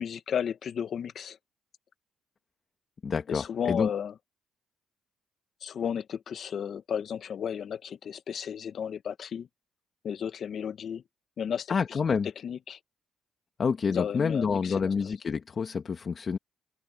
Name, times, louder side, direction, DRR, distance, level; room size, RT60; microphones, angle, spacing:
voice 1, 0.0-1.4 3.3-4.1 5.6-9.5 10.0-11.0 11.4-11.7 12.4-12.8 13.9-15.1, left 8 dB, 60° left, 1.4 m, -33 dB
voice 2, 3.0-3.9 11.7-12.3 13.6-16.4, left 5 dB, 45° left, 2.0 m, -28 dB
open air
cardioid pair, 90°, 0 cm